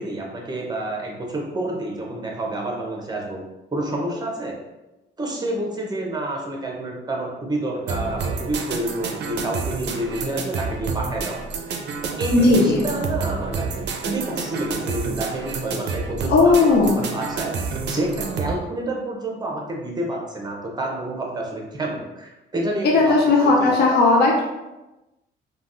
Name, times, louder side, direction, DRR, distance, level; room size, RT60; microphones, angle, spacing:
voice 1, 0.0-3.4 3.7-4.6 5.2-11.4 12.2-13.7 14.0-23.2 23.4-23.8, right 1 dB, 20° right, -1 dB, 0.8 m, -29 dB
sound 1, 7.9-18.5, right 4 dB, 60° right, 0.4 m, -29 dB
voice 2, 12.3-12.8 16.3-17.0 22.8-24.4, left 3 dB, 55° left, -2 dB, 0.6 m, -16 dB
3.3 x 2.3 x 2.5 m, 1.0 s
cardioid pair, 90°, 20 cm